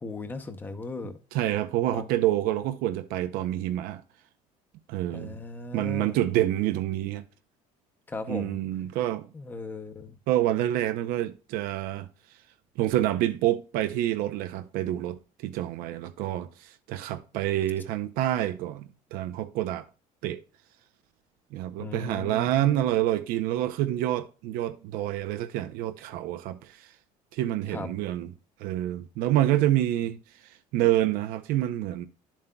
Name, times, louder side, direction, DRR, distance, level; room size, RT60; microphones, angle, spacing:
voice 1, 0.0-1.1 1.9-2.1 5.1-6.2 8.1-8.6 9.3-10.2 21.8-22.8 27.7-27.9, left 3 dB, 15° left, 0.6 m, -37 dB
voice 2, 1.3-4.0 4.9-5.4 5.7-7.3 8.3-9.3 10.3-12.1 12.8-19.9 20.2-20.4 21.5-26.9 27.3-28.3 28.6-32.1, right 13 dB, 85° right, 0.6 m, -27 dB
11.0 x 7.3 x 2.2 m
cardioid pair, 175°, 15 cm